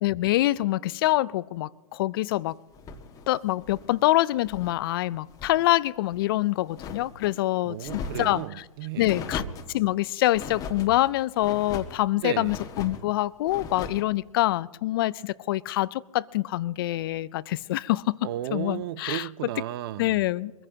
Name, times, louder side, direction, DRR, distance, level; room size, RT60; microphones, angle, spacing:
voice 1, 0.0-2.5 3.3-8.6 9.0-9.4 9.7-18.2 18.5-19.3 20.0-20.5, left 16 dB, 40° left, 0.4 m, -25 dB
sound 1, 2.7-4.8 5.1-5.7 6.1-7.4 7.8-8.5 9.1-9.7 10.3-10.9 11.4-12.0 12.4-13.1 13.5-14.1, left 4 dB, 20° left, 1.4 m, -39 dB
voice 2, 7.7-9.3 12.2-12.5 18.2-20.3, right 14 dB, 40° right, 0.5 m, -34 dB
23.5 x 15.5 x 2.8 m
hypercardioid pair, 130°, 19 cm